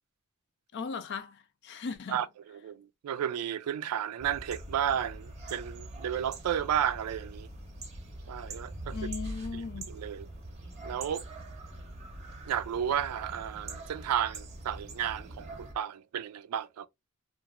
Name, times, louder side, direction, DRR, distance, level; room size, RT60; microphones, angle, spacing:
voice 1, 0.7-2.2 8.9-10.0, left 5 dB, 50° left, 0.4 m, -38 dB
voice 2, 2.1-7.5 8.3-9.0 9.9-10.3 10.8-11.2 12.5-16.9, right 9 dB, 85° right, 0.3 m, -33 dB
sound 1, 4.2-15.7, right 1 dB, 30° right, 0.6 m, -43 dB
2.9 x 2.4 x 2.4 m
head